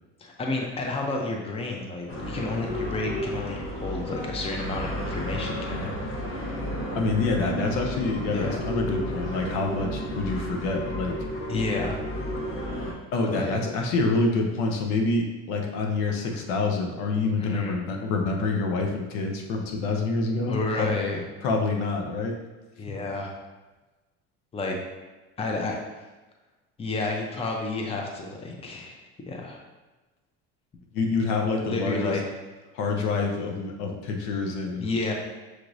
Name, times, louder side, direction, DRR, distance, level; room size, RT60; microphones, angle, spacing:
voice 1, 0.2-5.9 8.3-8.6 11.5-12.0 13.3-13.6 17.4-17.8 20.5-21.2 22.8-23.3 24.5-24.7 25.4-25.8 26.8-29.6 31.6-32.3 34.8-35.1, left 3 dB, 20° left, 1 dB, 0.6 m, -30 dB
sound 1, 2.1-12.9, equal, 35° left, 1.1 m, -32 dB
voice 2, 6.9-11.2 13.1-21.0 21.4-22.4 22.8-22.9 30.9-32.2 32.7-34.9, left 3 dB, 85° left, 1 dB, 0.8 m, -27 dB
6.3 x 2.9 x 2.6 m, 1.2 s
cardioid pair, 120°, 33 cm